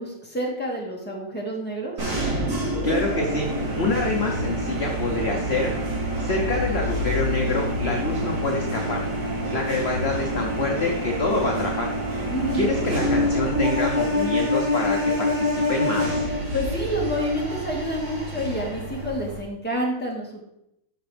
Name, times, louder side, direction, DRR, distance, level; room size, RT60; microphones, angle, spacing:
voice 1, 0.0-1.9 12.3-12.7 16.5-20.4, equal, 5° left, -3 dB, 1.8 m, -28 dB
sound 1, 2.0-19.4, equal, 60° right, 4.1 m, -26 dB
voice 2, 2.8-3.5 3.8-5.7 6.2-9.0 9.5-11.9 12.5-16.2, left 3 dB, 45° left, 0 dB, 0.9 m, -26 dB
13.0 x 5.4 x 3.4 m, 0.81 s
omnidirectional pair, 2.2 m